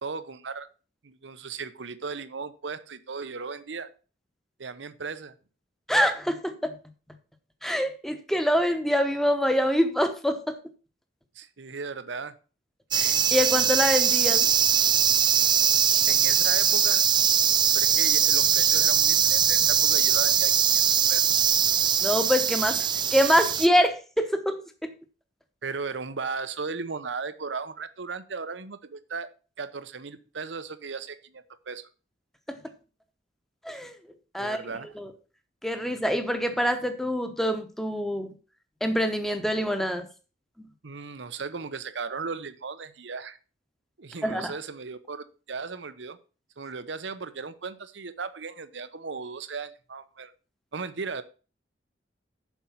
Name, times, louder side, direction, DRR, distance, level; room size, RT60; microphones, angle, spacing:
voice 1, 0.0-0.7 1.0-3.9 4.6-5.3 11.3-12.3 16.1-17.0 17.7-20.8 21.1-21.3 25.6-29.3 29.6-31.9 34.4-34.9 40.8-43.4 44.0-46.2 46.6-50.3 50.7-51.2, right 4 dB, 80° right, 13 dB, 0.8 m, -36 dB
voice 2, 5.9-6.8 7.6-10.6 12.9-14.5 22.0-24.9 32.5-32.6 33.6-33.9 34.3-34.6 35.0-35.1 35.6-38.3 38.8-40.1 44.2-44.5, equal, ahead, 7 dB, 1.0 m, -25 dB
sound 1, 12.9-23.7, right 9 dB, 25° right, 0.3 m, -22 dB
7.2 x 5.4 x 7.2 m, 0.36 s
head